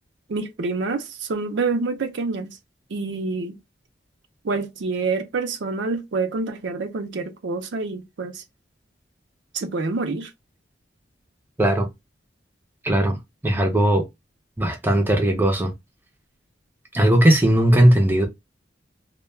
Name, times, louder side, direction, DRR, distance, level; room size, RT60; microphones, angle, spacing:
voice 1, 0.3-2.6 2.9-3.6 4.4-8.4 9.5-10.3, right 3 dB, 75° right, 0.5 m, -27 dB
voice 2, 12.8-13.2 13.4-14.0 14.6-15.7 16.9-18.3, right 1 dB, 10° right, 0.5 m, -18 dB
2.2 x 2.1 x 3.2 m
head